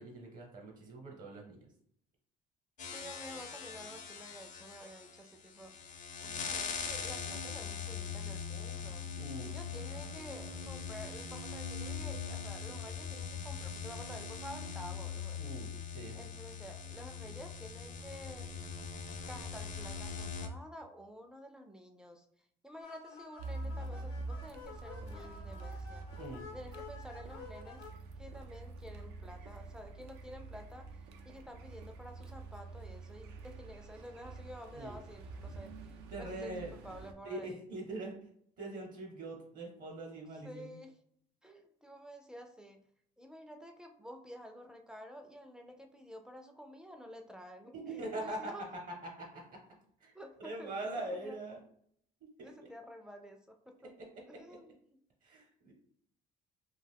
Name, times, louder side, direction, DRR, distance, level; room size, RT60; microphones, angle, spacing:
voice 1, 0.0-1.6 9.2-9.5 15.4-16.1 26.2-26.4 34.7-35.0 36.1-36.7 37.2-38.1 38.6-40.8 47.7-48.5 49.2-49.6 50.0-50.1 50.4-51.6 52.2-52.3 52.6-52.7 54.3-54.6 55.2-55.7, right 2 dB, 50° right, 1 dB, 0.8 m, -42 dB
sound 1, 2.8-20.5, left 6 dB, 50° left, 0.5 m, -41 dB
voice 2, 2.9-5.7 6.2-9.0 9.4-15.4 16.1-18.5 19.3-22.3 22.6-26.0 26.5-27.9 28.2-30.9 31.2-35.7 36.2-37.6 40.4-41.0 41.4-42.8 43.2-48.7 50.1-50.7 51.0-51.4 52.4-53.9 54.3-55.0, equal, 5° right, 3 dB, 0.3 m, -50 dB
sound 2, 22.8-27.9, left 5 dB, 85° left, 0.8 m, -51 dB
Car, 23.4-37.1, right 3 dB, 90° right, 0.5 m, -46 dB
2.5 x 2.2 x 3.4 m, 0.67 s
cardioid pair, 110°, 17 cm